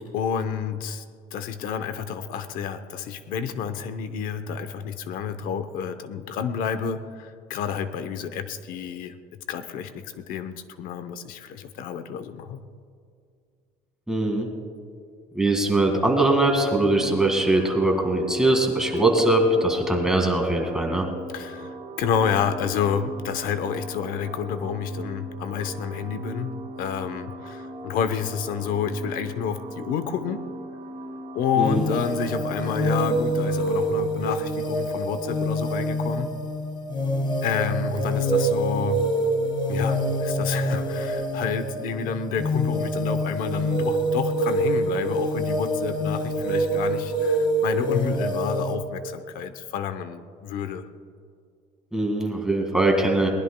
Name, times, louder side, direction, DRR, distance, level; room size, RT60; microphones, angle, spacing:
voice 1, 0.1-1.0 1.3-9.1 9.5-12.6 21.3-26.5 26.8-30.4 31.3-36.3 37.4-39.1 39.7-50.8, left 7 dB, 75° left, 10 dB, 0.8 m, -29 dB
voice 2, 14.1-14.5 15.4-21.1 31.6-31.8 51.9-53.3, right 2 dB, 5° right, 1 dB, 1.9 m, -21 dB
sound 1, 16.4-34.1, right 1 dB, 55° right, 1.8 m, -39 dB
sound 2, 31.6-48.8, equal, 35° left, 1.7 m, -26 dB
22.0 x 19.5 x 2.2 m, 2.2 s
cardioid pair, 165°, 15 cm